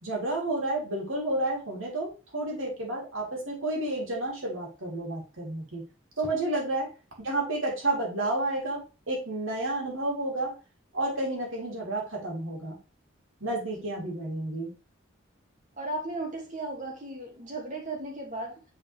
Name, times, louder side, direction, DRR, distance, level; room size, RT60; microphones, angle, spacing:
voice 1, 0.0-5.8 6.2-6.9 7.2-10.5 10.9-12.8 13.4-14.7, right 2 dB, 70° right, -2 dB, 3.1 m, -31 dB
voice 2, 15.8-18.6, right 2 dB, 40° right, -1 dB, 2.3 m, -35 dB
7.7 x 4.5 x 3.4 m, 0.32 s
head